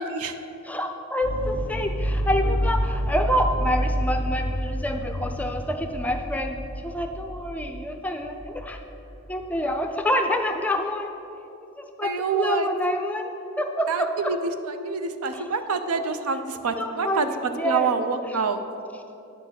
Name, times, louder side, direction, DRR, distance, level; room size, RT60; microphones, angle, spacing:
voice 1, 0.7-8.8 9.3-11.1 11.6-14.1 15.3-15.5 16.8-17.9, equal, 5° left, 5 dB, 0.4 m, -27 dB
sound 1, 1.2-9.4, equal, 60° right, 1.9 m, -28 dB
voice 2, 12.0-12.7 13.9-18.6, right 5 dB, 90° right, 9 dB, 0.6 m, -27 dB
9.3 x 4.5 x 6.9 m, 2.8 s
head